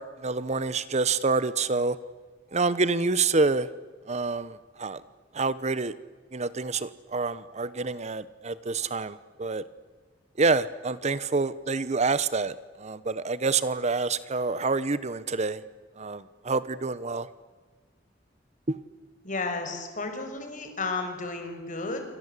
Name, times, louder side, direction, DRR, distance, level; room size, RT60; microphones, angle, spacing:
voice 1, 0.0-2.0 2.5-3.7 4.1-5.0 5.3-5.9 6.3-9.6 10.4-15.6 16.0-17.3 18.7-18.8, right 3 dB, 35° right, 16 dB, 0.9 m, -27 dB
voice 2, 19.2-22.0, left 3 dB, 45° left, 6 dB, 5.8 m, -33 dB
28.5 x 25.0 x 8.3 m, 1.5 s
head